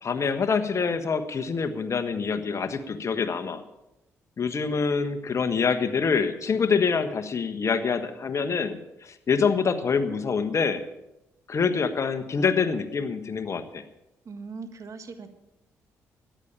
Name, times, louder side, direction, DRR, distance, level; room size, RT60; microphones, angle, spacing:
voice 1, 0.0-3.6 4.4-10.8 11.5-13.8, left 5 dB, 45° left, 8 dB, 1.3 m, -26 dB
voice 2, 14.3-15.3, right 4 dB, 50° right, 8 dB, 1.8 m, -39 dB
14.0 x 10.5 x 6.9 m, 0.92 s
hypercardioid pair, 50°, 7 cm